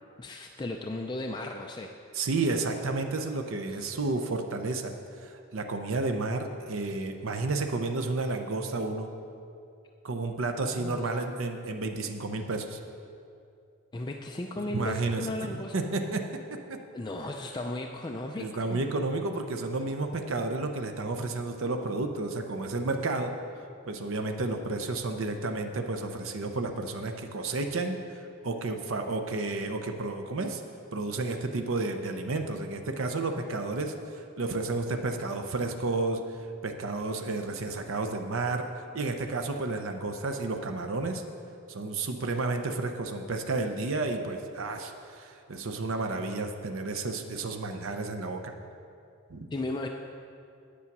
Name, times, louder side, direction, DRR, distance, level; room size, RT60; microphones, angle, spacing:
voice 1, 0.2-1.9 3.8-3.9 10.7-11.1 13.9-15.7 16.9-18.8 49.5-49.9, left 2 dB, 20° left, 2 dB, 0.4 m, -35 dB
voice 2, 2.1-9.1 10.0-12.8 14.7-16.2 16.5-16.8 18.4-23.3 23.9-30.6 30.9-36.2 36.6-38.7 38.9-41.2 41.7-48.5 49.3-49.5, right 3 dB, 65° right, 5 dB, 0.7 m, -31 dB
8.5 x 8.3 x 6.0 m, 2.5 s
head